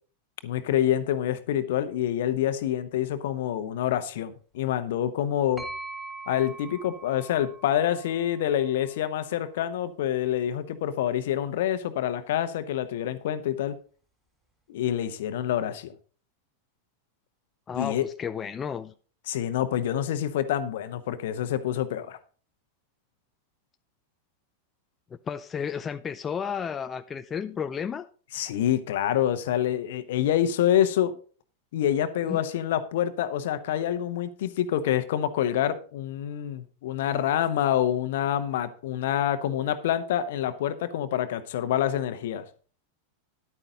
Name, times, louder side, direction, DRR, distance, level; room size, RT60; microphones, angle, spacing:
voice 1, 0.4-5.6 6.3-13.7 14.7-15.9 17.8-18.1 19.3-22.2 28.3-31.1 31.7-42.4, left 11 dB, 55° left, 1.0 m, -27 dB
sound 1, 5.6-9.3, right 3 dB, 10° right, 4.2 m, -42 dB
voice 2, 17.7-18.9 25.3-28.1 32.3-32.4, left 7 dB, 20° left, 0.4 m, -32 dB
11.0 x 9.0 x 3.9 m
figure-of-eight pair, 90°, 0 cm